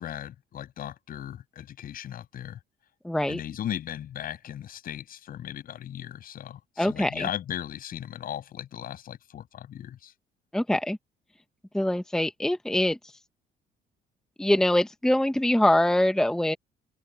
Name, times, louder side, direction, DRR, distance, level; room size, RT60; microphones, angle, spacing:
voice 1, 0.0-2.6 3.3-10.1, left 10 dB, 60° left, 7.8 m, -37 dB
voice 2, 3.0-3.4 6.8-7.3 10.5-11.0 11.7-13.0 14.4-16.6, left 1 dB, 5° left, 0.9 m, -23 dB
open air
cardioid pair, 110°, 17 cm